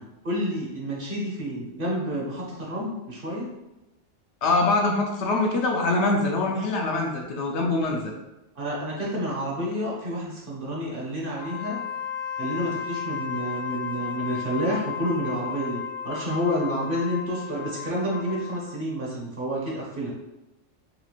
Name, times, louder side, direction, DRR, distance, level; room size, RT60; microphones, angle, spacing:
voice 1, 0.0-3.5 8.6-11.8 12.4-20.1, equal, 50° right, -4 dB, 0.9 m, -29 dB
voice 2, 4.4-8.1, left 2 dB, 70° left, 1 dB, 0.8 m, -24 dB
Wind instrument woodwind instrument, 11.3-18.8, left 8 dB, 85° right, 1.2 m, -34 dB
4.1 x 2.4 x 2.9 m, 0.98 s
omnidirectional pair, 1.3 m